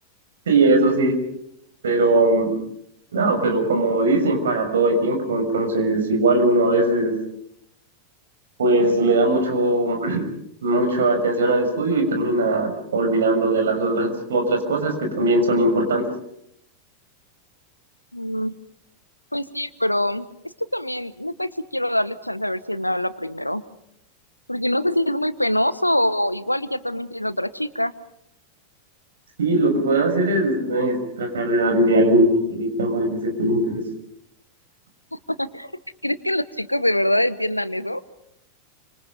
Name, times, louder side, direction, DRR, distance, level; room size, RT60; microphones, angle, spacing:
voice 1, 0.5-1.2 1.8-2.5 3.1-7.2 8.6-10.3 10.6-16.0 29.4-33.8, right 2 dB, 65° right, 5 dB, 6.4 m, -20 dB
voice 2, 18.1-18.5 19.3-20.3 20.7-23.6 24.5-27.9 35.1-35.7 36.0-38.0, left 1 dB, 90° left, 16 dB, 1.1 m, -24 dB
28.5 x 26.5 x 5.3 m, 0.74 s
figure-of-eight pair, 90°, 0 cm